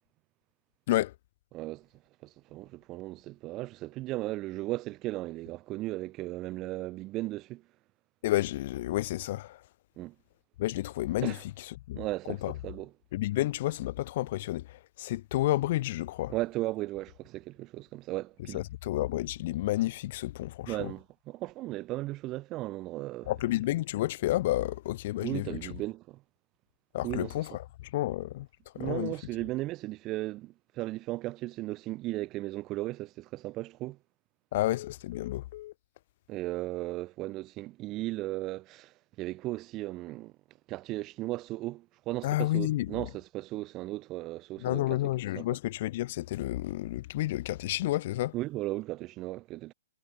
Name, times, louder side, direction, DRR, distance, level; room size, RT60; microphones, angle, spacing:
voice 1, 1.5-1.9 2.2-7.6 10.0-10.1 11.2-11.4 11.9-12.9 16.3-18.6 20.7-23.3 25.2-26.2 27.0-27.3 28.8-34.0 36.3-40.3 40.7-45.0 45.3-45.4 48.3-49.7, right 18 dB, 30° right, 1.5 m, -36 dB
voice 2, 8.2-9.6 10.6-12.0 12.3-12.5 13.1-16.3 18.5-20.9 23.3-25.7 26.9-28.5 28.7-29.1 34.5-35.7 42.2-43.1 44.6-48.3, left 16 dB, 45° left, 1.1 m, -31 dB
figure-of-eight pair, 120°, 0 cm